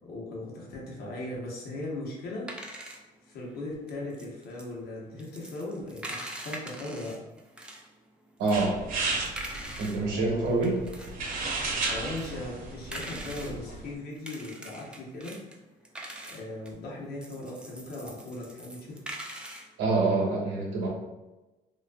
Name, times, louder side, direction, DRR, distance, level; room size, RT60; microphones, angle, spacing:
voice 1, 0.0-2.5 3.2-7.2 10.0-10.7 11.6-15.4 16.3-19.0, left 2 dB, 65° left, -4 dB, 0.9 m, -38 dB
sound 1, 2.1-7.9 8.3-10.0 10.4-13.6 14.1-19.7, right 1 dB, 5° right, 0.3 m, -43 dB
voice 2, 8.4-8.8 9.8-10.8 19.8-20.9, right 3 dB, 90° right, -1 dB, 0.8 m, -26 dB
sound 2, 8.5-13.9, right 3 dB, 55° right, 0.6 m, -34 dB
2.5 x 2.4 x 2.2 m, 1.1 s
cardioid pair, 110°, 17 cm